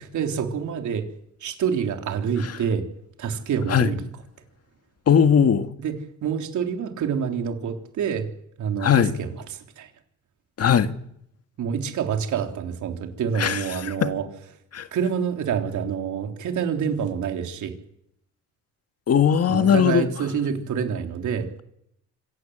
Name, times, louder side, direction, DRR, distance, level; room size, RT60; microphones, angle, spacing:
voice 1, 0.1-1.1 1.4-2.9 3.2-4.1 5.8-5.9 6.2-8.3 8.6-9.9 11.6-14.3 14.9-17.7 19.5-21.6, right 7 dB, 75° right, 3.4 m, -27 dB
voice 2, 5.1-5.7 8.8-9.2 10.6-11.0 13.4-14.1 14.7-14.9 19.1-20.1, left 8 dB, 55° left, 1.9 m, -19 dB
26.0 x 16.0 x 7.9 m
cardioid pair, 90°, 30 cm